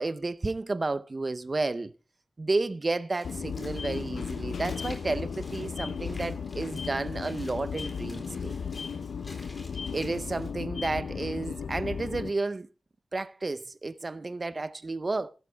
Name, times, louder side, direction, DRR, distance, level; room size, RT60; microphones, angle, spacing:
voice 1, 0.0-1.9 2.4-8.5 9.9-12.7 13.1-15.3, right 3 dB, 30° right, 0.6 m, -31 dB
Walk footsteps / Splash splatter, 3.1-10.5, left 2 dB, 35° left, 4.0 m, -52 dB
sound 1, 3.2-12.3, left 6 dB, 80° left, 0.6 m, -35 dB
15.0 x 13.0 x 3.4 m
wide cardioid pair, 125°, 0 cm